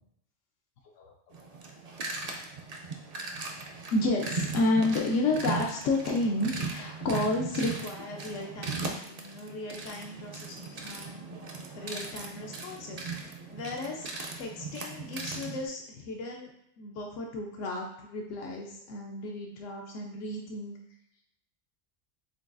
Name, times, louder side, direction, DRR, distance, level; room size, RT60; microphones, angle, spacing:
sound 1, 1.3-15.7, right 4 dB, 55° right, 0.4 m, -38 dB
voice 1, 3.9-11.2 11.8-13.1 13.5-14.1 14.4-20.8, left 2 dB, 85° left, 1 dB, 1.0 m, -32 dB
7.1 x 2.4 x 2.3 m, 0.79 s
omnidirectional pair, 1.2 m